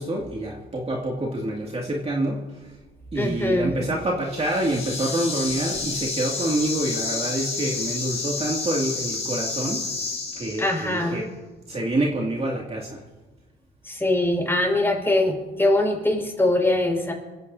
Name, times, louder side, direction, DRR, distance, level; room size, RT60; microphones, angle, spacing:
voice 1, 0.0-2.8 3.1-9.9 10.3-11.3 11.7-13.0, right 1 dB, 30° right, -2 dB, 2.4 m, -27 dB
voice 2, 3.1-3.8 10.6-11.2 13.8-17.1, left 1 dB, 10° left, 0 dB, 5.5 m, -22 dB
sound 1, 4.2-11.0, left 4 dB, 35° left, 4.0 m, -30 dB
27.5 x 15.0 x 2.8 m, 1.2 s
cardioid pair, 90°, 20 cm